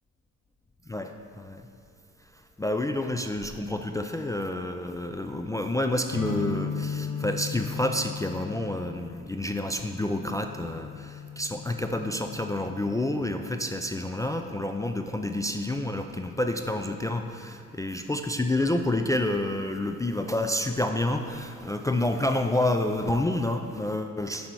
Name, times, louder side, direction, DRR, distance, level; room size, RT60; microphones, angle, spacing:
voice 1, 0.9-1.7 2.6-24.5, left 1 dB, 10° left, 5 dB, 0.3 m, -29 dB
sound 1, 6.1-13.7, left 5 dB, 90° left, 1.9 m, -37 dB
7.3 x 5.6 x 4.5 m, 2.1 s
supercardioid pair, 65°, 36 cm